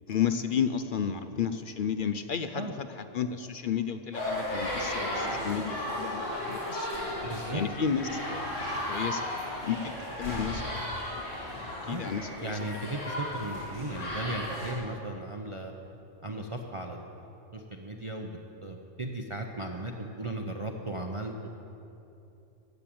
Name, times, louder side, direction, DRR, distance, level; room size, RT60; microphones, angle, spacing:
voice 1, 0.1-6.9 7.5-8.5 8.9-9.3 9.6-9.9 10.2-11.2 11.8-12.6, left 7 dB, 55° left, 10 dB, 0.6 m, -32 dB
sound 1, 4.1-14.7, left 1 dB, 85° left, 3.2 m, -35 dB
voice 2, 7.2-7.6 11.8-12.1 12.4-15.7 16.2-17.1 17.5-21.5, right 2 dB, 30° right, 2 dB, 0.7 m, -36 dB
14.5 x 7.5 x 8.6 m, 2.8 s
omnidirectional pair, 1.3 m